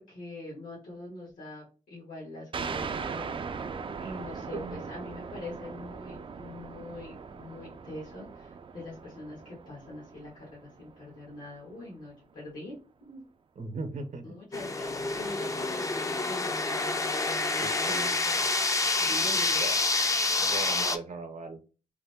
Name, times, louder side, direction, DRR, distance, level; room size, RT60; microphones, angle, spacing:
voice 1, 0.0-12.8 13.1-13.2 14.2-18.6 19.0-19.6, left 2 dB, 80° left, -4 dB, 1.5 m, -44 dB
sound 1, 2.5-11.7, right 5 dB, 40° right, 0.4 m, -40 dB
voice 2, 13.6-14.2 17.6-18.1 19.6-19.8 20.4-21.6, right 3 dB, 65° right, 7 dB, 0.7 m, -38 dB
sound 2, 14.5-21.0, left 3 dB, 25° left, 0.4 m, -28 dB
3.6 x 2.1 x 3.4 m, 0.34 s
cardioid pair, 85°, 14 cm